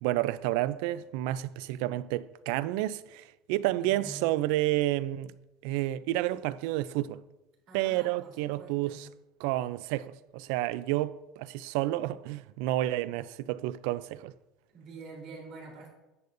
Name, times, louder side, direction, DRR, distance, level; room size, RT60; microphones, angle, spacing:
voice 1, 0.0-5.3 5.6-7.2 7.7-9.1 9.4-14.3, right 15 dB, 70° right, 0.4 m, -30 dB
voice 2, 3.7-4.3 7.7-9.0 14.7-15.9, right 3 dB, 50° right, 3.3 m, -47 dB
13.5 x 8.2 x 2.6 m
cardioid pair, 175°, 0 cm